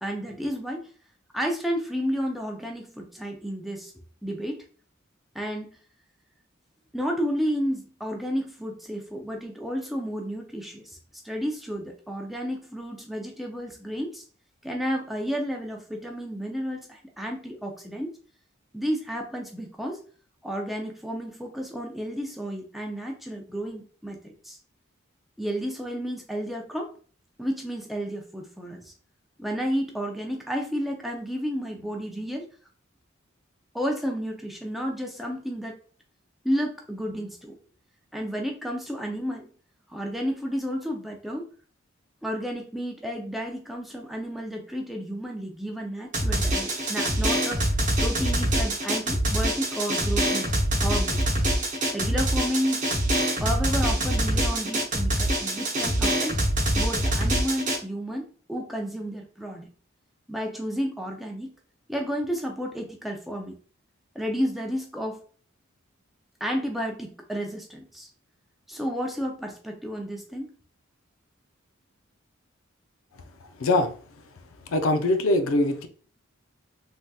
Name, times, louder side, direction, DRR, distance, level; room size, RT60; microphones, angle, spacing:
voice 1, 0.0-0.9 1.3-3.9 4.2-4.6 5.3-5.8 6.9-11.0 11.2-14.2 14.6-18.2 18.7-20.0 20.4-24.6 25.4-26.9 27.4-28.9 29.4-32.5 33.7-35.8 36.4-37.6 38.1-39.5 39.9-41.5 42.2-47.6 48.0-50.5 50.8-51.2 51.9-52.9 53.4-56.4 56.7-59.7 60.3-61.5 61.9-63.5 64.1-65.2 66.4-68.1 68.7-70.5, equal, ahead, 0 dB, 0.4 m, -31 dB
Drum, 46.1-57.8, right 1 dB, 40° right, 0.8 m, -25 dB
voice 2, 73.6-73.9 74.7-75.9, left 2 dB, 85° left, 8 dB, 0.5 m, -22 dB
3.4 x 2.7 x 2.2 m, 0.41 s
head